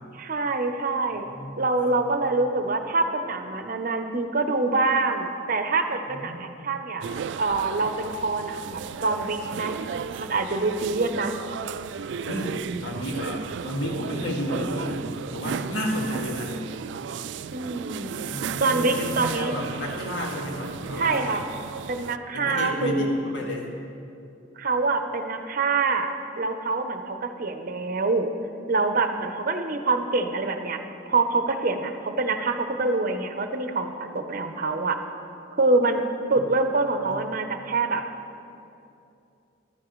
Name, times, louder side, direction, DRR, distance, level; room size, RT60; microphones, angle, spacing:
voice 1, 0.1-1.2 1.6-7.1 7.4-9.8 10.2-11.3 17.5-18.1 18.6-19.5 20.9-21.4 21.9-23.1 24.6-28.3 28.7-30.8 31.1-35.0 35.6-36.0 36.3-38.0, right 3 dB, 50° right, 6 dB, 0.7 m, -25 dB
voice 2, 1.3-2.0 6.1-6.4 12.3-15.0 15.3-16.5 18.3-21.4 22.3-23.7 37.0-37.2, left 1 dB, 70° left, -1 dB, 1.9 m, -31 dB
sound 1, 7.0-22.2, right 7 dB, 70° right, 0.3 m, -35 dB
14.5 x 12.5 x 3.1 m, 2.7 s
head